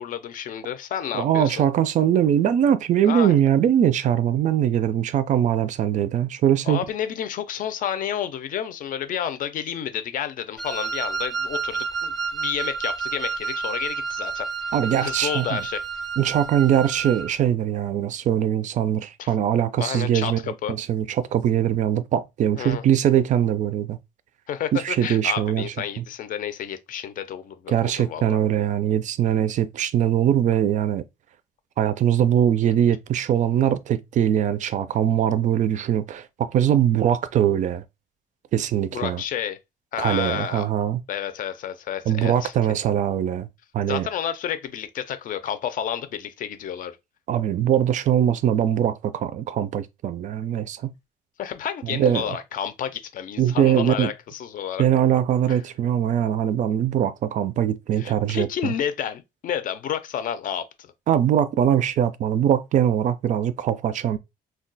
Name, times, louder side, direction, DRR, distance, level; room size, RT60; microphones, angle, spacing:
voice 1, 0.0-1.6 3.1-3.4 6.7-14.5 15.0-15.8 19.2-19.3 19.8-20.7 22.6-22.8 24.5-28.4 38.9-39.6 39.9-40.7 41.1-42.5 43.9-46.9 51.4-54.9 55.5-55.6 58.0-60.9, left 9 dB, 55° left, 0.5 m, -30 dB
voice 2, 1.1-6.8 14.7-15.6 16.2-20.4 20.7-24.0 24.7-26.0 27.7-31.0 31.8-37.8 38.5-39.2 40.0-41.0 42.1-43.5 43.7-44.1 47.3-50.9 51.8-52.3 53.4-54.1 54.8-58.7 61.1-64.2, right 10 dB, 45° right, 0.4 m, -22 dB
Wind instrument woodwind instrument, 10.6-17.3, right 5 dB, ahead, 0.6 m, -30 dB
2.3 x 2.2 x 3.9 m
cardioid pair, 110°, 17 cm